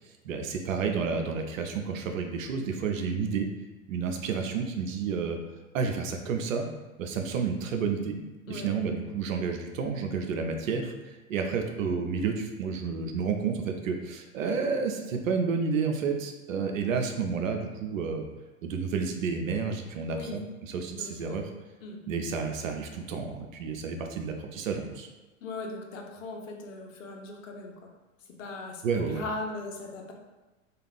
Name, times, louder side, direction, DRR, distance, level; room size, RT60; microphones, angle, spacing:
voice 1, 0.2-3.5 3.9-5.4 5.7-6.7 7.0-8.2 8.5-18.3 18.6-20.4 20.7-21.4 22.1-25.1 28.8-29.2, right 5 dB, 75° right, 4 dB, 0.6 m, -30 dB
voice 2, 20.1-20.4 21.0-21.4 21.8-22.0 25.4-27.7 28.4-30.1, left 2 dB, 70° left, 1 dB, 0.7 m, -39 dB
2.4 x 2.4 x 3.3 m, 1.2 s
hypercardioid pair, 105°, 40 cm